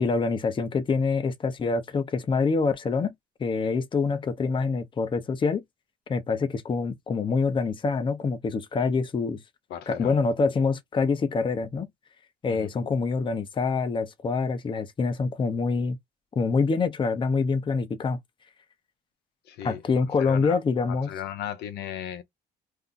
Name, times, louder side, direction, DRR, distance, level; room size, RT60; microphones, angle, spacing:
voice 1, 0.0-3.1 3.4-5.6 6.1-9.4 9.9-11.9 12.4-16.0 16.4-18.2 19.6-21.1, left 4 dB, 30° left, 0.7 m, -26 dB
voice 2, 9.7-10.2 12.5-12.7 19.4-20.6 20.9-22.2, left 10 dB, 80° left, 0.7 m, -37 dB
2.7 x 2.3 x 3.8 m
cardioid pair, 110°, 17 cm